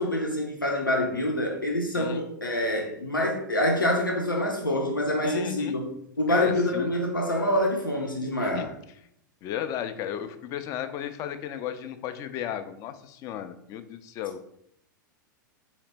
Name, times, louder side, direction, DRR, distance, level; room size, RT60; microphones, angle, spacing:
voice 1, 0.0-5.9 6.2-8.7, left 1 dB, 85° left, 0 dB, 0.7 m, -26 dB
voice 2, 5.2-5.8 6.3-6.9 8.5-8.7 9.4-14.4, left 10 dB, 30° left, 10 dB, 0.3 m, -34 dB
4.1 x 2.8 x 3.3 m, 0.74 s
figure-of-eight pair, 95°, 11 cm